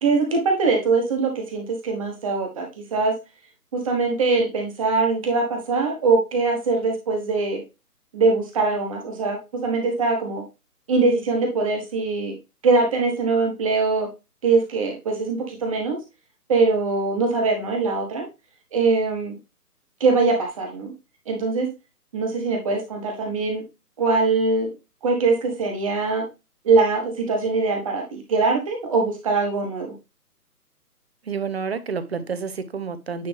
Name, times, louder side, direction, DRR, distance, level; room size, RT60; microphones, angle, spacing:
voice 1, 0.0-3.1 3.7-7.6 8.1-10.4 10.9-12.3 12.6-14.1 14.4-16.0 16.5-18.3 18.7-19.3 20.0-20.9 21.3-21.7 22.1-23.6 24.0-24.7 25.0-26.3 26.6-29.9, right 3 dB, 20° right, 2 dB, 1.2 m, -22 dB
voice 2, 31.3-33.3, right 5 dB, 40° right, 13 dB, 0.7 m, -29 dB
9.4 x 3.3 x 3.3 m, 0.26 s
figure-of-eight pair, 145°, 47 cm